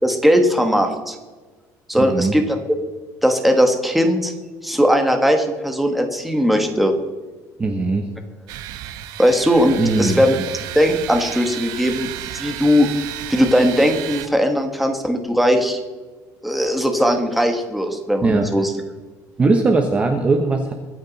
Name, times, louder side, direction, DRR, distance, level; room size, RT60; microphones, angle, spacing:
voice 1, 0.0-1.2 1.9-2.4 3.2-4.3 4.6-6.9 9.2-10.4 10.7-12.1 12.3-12.9 13.3-15.8 16.4-18.7, equal, ahead, 4 dB, 1.4 m, -18 dB
voice 2, 1.9-2.4 7.6-8.1 9.8-10.5 18.2-18.5 19.4-20.7, right 3 dB, 20° right, 4 dB, 1.0 m, -19 dB
sound 1, 8.5-14.3, right 12 dB, 80° right, 1.0 m, -32 dB
23.5 x 8.9 x 4.1 m, 1.3 s
cardioid pair, 170°, 7 cm